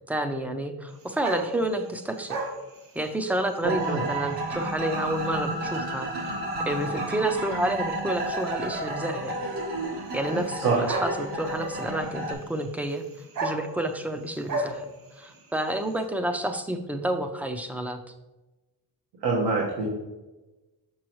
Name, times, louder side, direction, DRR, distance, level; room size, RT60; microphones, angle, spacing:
voice 1, 0.1-2.4 3.0-6.3 6.6-9.4 10.1-13.0 13.4-14.9 15.2-18.0, right 1 dB, 5° right, 6 dB, 0.4 m, -29 dB
sound 1, 0.9-16.1, right 2 dB, 50° right, 1.6 m, -39 dB
sound 2, 3.6-12.3, right 1 dB, 70° right, 1.3 m, -32 dB
voice 2, 19.2-19.9, right 4 dB, 85° right, -3 dB, 1.5 m, -24 dB
6.2 x 6.1 x 3.0 m, 1.1 s
cardioid pair, 130°, 42 cm